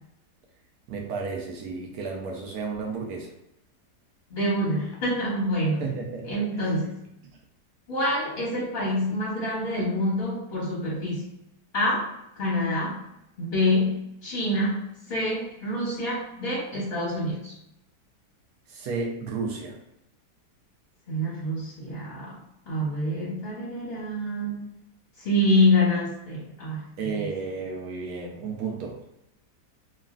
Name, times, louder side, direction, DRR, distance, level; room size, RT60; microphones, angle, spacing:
voice 1, 0.9-3.3 5.8-6.3 6.6-6.7 18.7-19.8 27.0-29.1, right 4 dB, 70° right, 0 dB, 1.0 m, -32 dB
voice 2, 4.3-5.8 6.2-6.9 7.9-11.2 11.7-12.1 12.4-13.0 13.4-17.5 21.1-22.3 22.7-24.7 25.2-26.9 27.2-27.3, left 1 dB, 40° left, -6 dB, 0.8 m, -26 dB
3.1 x 2.3 x 2.3 m, 0.82 s
omnidirectional pair, 1.7 m